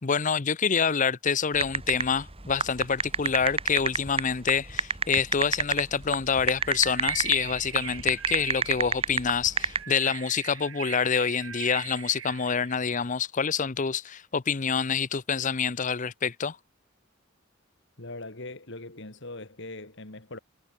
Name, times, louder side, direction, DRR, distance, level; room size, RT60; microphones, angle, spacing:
voice 1, 0.0-16.6, left 6 dB, 40° left, 0.7 m, -27 dB
sound 1, 1.6-9.8, right 5 dB, 30° right, 2.2 m, -27 dB
Bird, 6.6-12.9, right 9 dB, 85° right, 2.6 m, -39 dB
voice 2, 18.0-20.4, left 2 dB, 65° left, 3.1 m, -41 dB
head